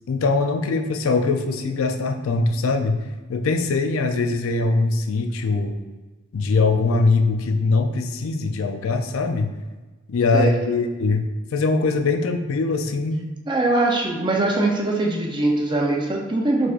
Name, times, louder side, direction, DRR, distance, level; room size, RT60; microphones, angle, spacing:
voice 1, 0.1-3.0 3.3-5.7 6.3-9.5 10.1-11.3 11.5-13.2, left 3 dB, 85° left, 6 dB, 0.4 m, -22 dB
voice 2, 10.3-10.8 13.5-16.7, right 2 dB, 25° right, 0 dB, 0.6 m, -22 dB
4.7 x 3.8 x 2.5 m, 1.2 s
head